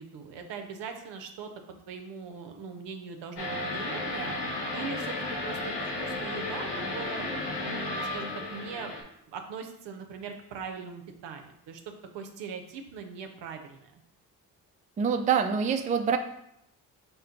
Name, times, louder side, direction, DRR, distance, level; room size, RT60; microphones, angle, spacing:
voice 1, 0.0-1.5 1.8-4.3 4.7-7.3 7.6-8.9 9.3-11.8 12.1-14.0, right 5 dB, 70° right, 5 dB, 0.6 m, -40 dB
sound 1, 3.4-9.0, left 2 dB, 65° left, 0.9 m, -33 dB
voice 2, 15.0-16.2, right 6 dB, 20° right, 7 dB, 0.3 m, -25 dB
4.3 x 2.2 x 3.8 m, 0.77 s
hypercardioid pair, 40°, 45 cm